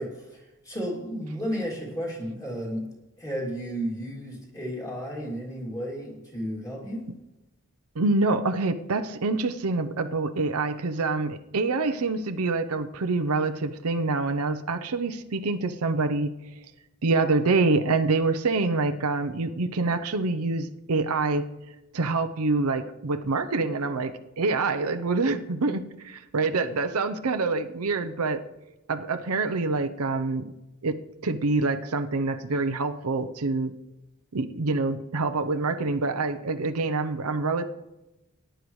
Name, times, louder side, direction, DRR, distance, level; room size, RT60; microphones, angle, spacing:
voice 1, 0.0-2.9 3.2-7.1, equal, 15° left, -3 dB, 2.7 m, -33 dB
voice 2, 7.9-16.3 17.0-21.5 21.9-28.4 28.9-30.4 30.8-33.7 34.3-37.7, right 3 dB, 85° right, 8 dB, 0.7 m, -26 dB
19.5 x 10.0 x 3.2 m, 0.98 s
head